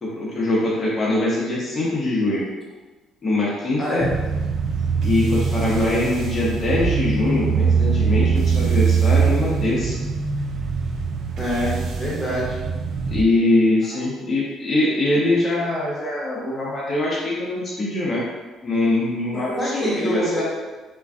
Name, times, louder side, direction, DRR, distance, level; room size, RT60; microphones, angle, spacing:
voice 1, 0.0-2.4 3.2-4.0 5.0-10.0 13.1-18.3 18.6-20.4, left 2 dB, 25° left, -7 dB, 0.7 m, -22 dB
voice 2, 3.8-4.1 11.4-12.6 13.9-14.0 19.3-20.4, equal, 5° left, -8 dB, 1.1 m, -26 dB
sound 1, 4.0-13.2, right 5 dB, 55° right, 0.3 m, -22 dB
2.5 x 2.3 x 3.4 m, 1.2 s
cardioid pair, 120°, 0 cm